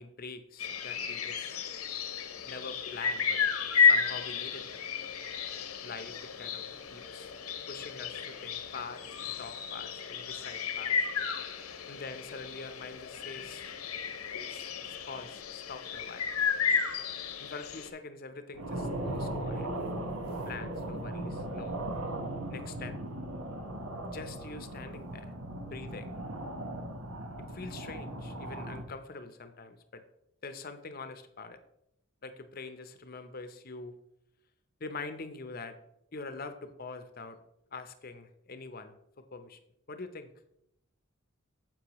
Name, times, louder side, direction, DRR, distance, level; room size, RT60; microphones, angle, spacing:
voice 1, 0.0-1.6 2.4-3.4 3.8-4.8 5.8-7.3 7.7-11.1 11.8-13.7 14.5-16.3 17.4-19.7 20.2-21.8 22.5-23.0 24.1-25.3 25.7-26.2 27.4-30.0 30.4-31.6 32.2-33.9 34.8-35.8 36.1-37.4 37.7-39.6 39.9-40.3, left 4 dB, 45° left, 9 dB, 0.7 m, -44 dB
sound 1, 0.6-17.9, left 6 dB, 90° left, 0.9 m, -32 dB
sound 2, 18.5-28.8, right 1 dB, 85° right, 1.2 m, -38 dB
9.5 x 7.5 x 3.0 m, 0.82 s
head